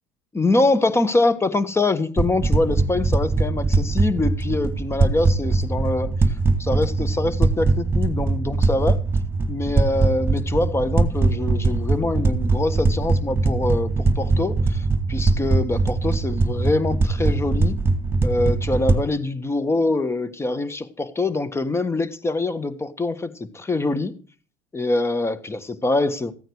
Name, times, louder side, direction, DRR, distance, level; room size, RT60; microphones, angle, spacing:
voice 1, 0.3-6.1 6.6-9.0 9.5-17.8 18.2-24.1 24.7-26.3, left 2 dB, 15° left, 1.5 m, -24 dB
sound 1, 2.2-19.0, right 3 dB, 15° right, 1.8 m, -21 dB
15.0 x 9.1 x 4.7 m
supercardioid pair, 100°, 15 cm